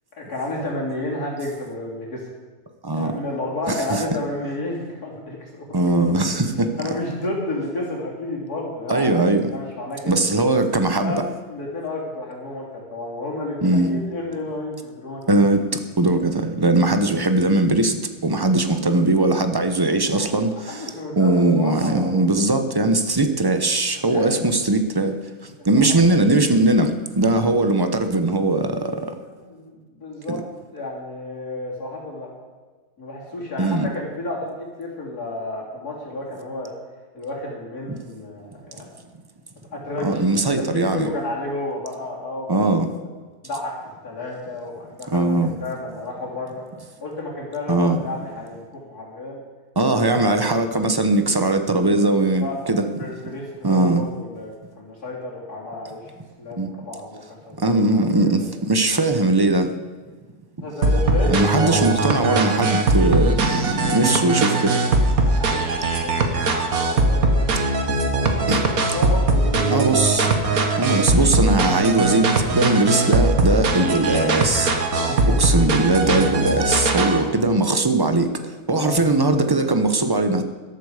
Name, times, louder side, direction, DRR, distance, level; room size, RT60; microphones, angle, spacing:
voice 1, 0.2-2.3 2.9-5.6 6.5-9.1 9.5-10.3 11.0-15.2 18.6-18.7 20.1-20.3 20.7-22.5 24.0-24.5 25.6-26.0 29.3-30.4 30.7-32.3 33.0-36.7 37.1-38.9 39.7-43.0 43.4-46.6 47.0-49.4 49.8-50.2 52.4-52.7 53.0-56.1 56.4-57.7 58.0-58.5 60.6-61.8 65.2-67.6 68.9-70.2 74.9-75.6 77.0-77.2 78.7-79.0, left 2 dB, 85° left, -3 dB, 3.7 m, -32 dB
voice 2, 3.7-4.0 5.7-6.8 8.9-9.4 10.1-11.2 13.6-14.0 15.3-20.9 21.2-25.2 25.4-29.1 30.3-30.4 33.6-33.9 37.9-38.0 40.0-41.1 42.5-42.9 45.1-45.6 47.7-48.0 49.8-52.9 53.6-54.0 56.6-56.7 57.6-59.7 61.3-64.8 68.5-68.7 69.7-75.0 75.2-80.4, right 2 dB, 20° right, 8 dB, 0.8 m, -20 dB
sound 1, 60.8-77.2, right 2 dB, 70° right, 1.8 m, -20 dB
14.0 x 12.5 x 5.0 m, 1.4 s
omnidirectional pair, 1.6 m